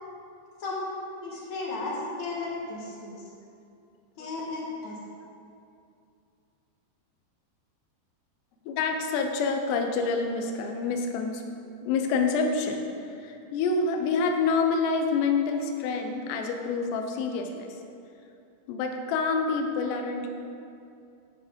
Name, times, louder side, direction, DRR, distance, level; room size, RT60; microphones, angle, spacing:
voice 1, 1.2-3.2 4.2-4.9, left 3 dB, 55° left, -4 dB, 2.2 m, -34 dB
voice 2, 8.7-11.4 11.8-12.8 13.1-17.7 18.7-20.3, left 4 dB, 90° left, 4 dB, 2.9 m, -27 dB
8.8 x 7.4 x 5.1 m, 2.5 s
omnidirectional pair, 4.8 m